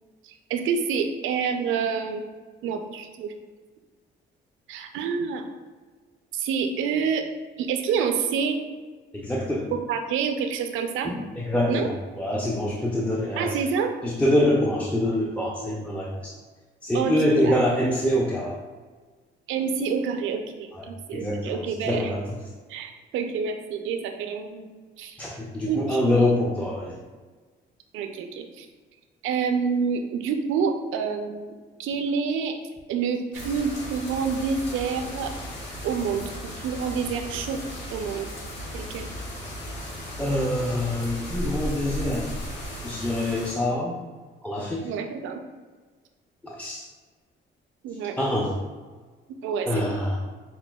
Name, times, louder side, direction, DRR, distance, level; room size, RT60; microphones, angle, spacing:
voice 1, 0.2-2.3 2.6-3.3 4.7-5.4 6.3-7.2 7.6-8.6 9.7-11.1 11.7-11.9 13.4-13.9 16.9-17.7 19.5-22.1 22.7-24.7 25.0-25.2 25.7-26.4 27.9-28.7 29.2-32.6 32.9-35.3 35.8-38.3 38.7-39.1 44.8-45.4 47.8-48.1 49.4-49.9, right 6 dB, 90° right, 6 dB, 0.4 m, -28 dB
voice 2, 9.1-9.7 11.1-11.9 12.2-13.5 14.0-16.3 16.8-18.5 21.1-22.2 25.2-26.9 40.2-42.3 42.8-43.9 44.4-44.9 46.4-46.8 48.2-48.5 49.7-50.2, left 1 dB, 5° left, -3 dB, 0.4 m, -25 dB
sound 1, 33.3-43.5, equal, 75° left, 1.0 m, -36 dB
5.8 x 2.2 x 2.2 m, 1.4 s
cardioid pair, 90°, 20 cm